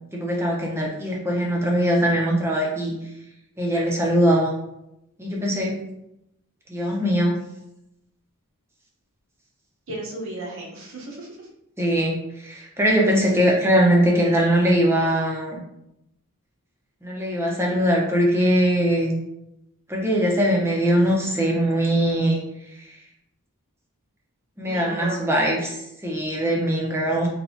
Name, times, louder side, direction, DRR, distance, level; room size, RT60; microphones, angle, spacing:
voice 1, 0.1-2.9 3.6-4.5 5.2-5.7 6.7-7.4 11.8-15.6 17.0-19.2 19.9-22.4 24.6-27.3, equal, 10° right, -2 dB, 0.6 m, -21 dB
voice 2, 9.9-11.5 24.6-25.2, right 1 dB, 60° right, -3 dB, 0.8 m, -35 dB
3.4 x 2.9 x 2.6 m, 0.83 s
head